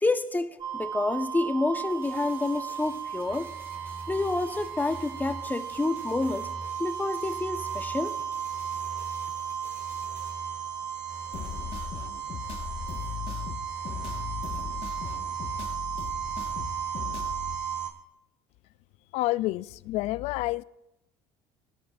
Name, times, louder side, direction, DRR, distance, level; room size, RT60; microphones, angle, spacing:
voice 1, 0.0-3.5 4.1-6.5 6.8-8.2, left 2 dB, 15° left, 1.0 m, -28 dB
sound 1, 0.6-17.9, right 8 dB, 45° right, 4.1 m, -35 dB
sound 2, 1.9-10.4, right 2 dB, 20° right, 3.7 m, -55 dB
sound 3, 11.3-17.6, left 8 dB, 50° left, 1.4 m, -38 dB
voice 2, 19.1-20.6, left 18 dB, 70° left, 0.4 m, -28 dB
18.5 x 16.0 x 2.5 m
supercardioid pair, 80°, 11 cm